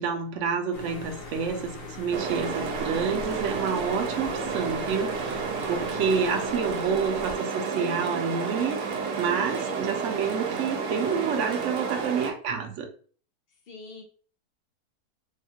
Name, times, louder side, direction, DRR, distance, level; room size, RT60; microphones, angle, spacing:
voice 1, 0.0-12.9, right 6 dB, 65° right, 4 dB, 0.8 m, -29 dB
sound 1, 0.7-7.3, left 2 dB, 40° left, 0.8 m, -40 dB
sound 2, 2.1-12.3, right 5 dB, 80° right, 1.1 m, -31 dB
voice 2, 9.5-9.9 13.7-14.0, left 4 dB, 90° left, 3 dB, 0.5 m, -43 dB
3.4 x 2.3 x 2.7 m, 0.42 s
omnidirectional pair, 1.7 m